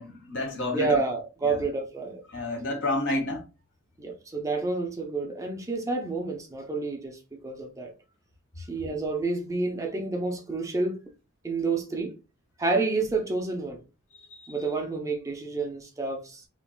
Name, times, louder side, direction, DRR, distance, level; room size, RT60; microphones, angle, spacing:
voice 1, 0.0-1.0 1.4-1.6 2.3-3.4, left 1 dB, 60° left, 1.4 m, -29 dB
voice 2, 0.7-2.2 4.0-7.9 8.6-11.0 11.4-12.1 12.6-13.8 14.5-16.5, right 3 dB, 15° right, 0.5 m, -29 dB
3.5 x 2.9 x 2.3 m
head